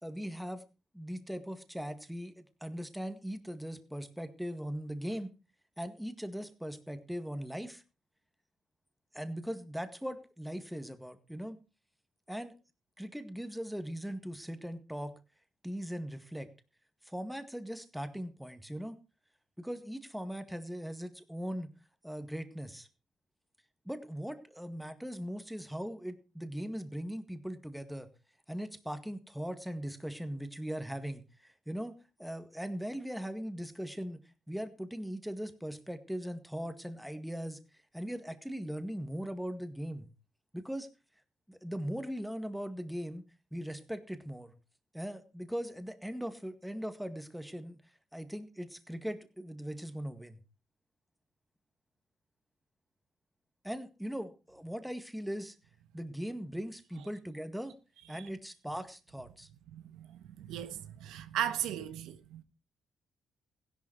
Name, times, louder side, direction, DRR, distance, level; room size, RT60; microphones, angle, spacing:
voice 1, 0.0-0.6 0.9-5.3 5.8-7.8 9.1-11.6 12.3-12.5 13.0-15.1 15.6-16.5 17.0-19.0 19.6-21.7 22.0-22.9 23.9-28.1 28.5-40.1 40.5-40.9 41.5-44.5 44.9-47.8 48.1-50.4 53.6-55.6 55.9-57.7 58.1-59.5, equal, ahead, 1.9 m, -40 dB
voice 2, 59.7-62.4, right 11 dB, 90° right, 1.3 m, -37 dB
16.0 x 11.0 x 4.6 m
cardioid pair, 90°, 0 cm